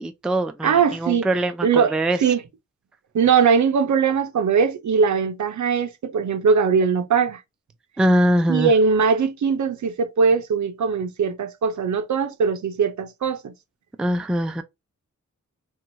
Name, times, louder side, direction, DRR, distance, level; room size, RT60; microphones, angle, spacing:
voice 1, 0.0-2.2 8.0-8.7 14.0-14.6, equal, 5° right, 0.3 m, -22 dB
voice 2, 0.6-1.3 1.6-2.4 3.1-7.4 8.5-13.5, right 6 dB, 65° right, 0.5 m, -20 dB
2.9 x 2.3 x 2.7 m
wide cardioid pair, 75°, 31 cm